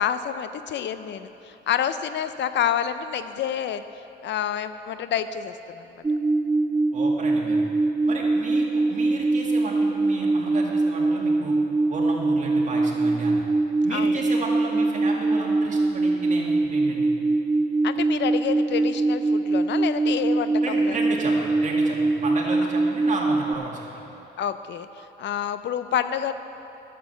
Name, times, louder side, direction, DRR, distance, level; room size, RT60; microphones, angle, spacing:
voice 1, 0.0-3.8 4.2-5.9 13.9-14.2 17.8-21.0 24.4-26.3, left 9 dB, 65° left, 11 dB, 0.5 m, -28 dB
sound 1, 6.0-23.5, right 3 dB, 10° right, 0.4 m, -23 dB
voice 2, 6.9-7.6 8.1-11.5 11.9-13.4 13.8-17.1 20.6-24.1, right 2 dB, 40° right, -2 dB, 2.2 m, -33 dB
11.0 x 7.5 x 6.9 m, 3.0 s
cardioid pair, 90°, 20 cm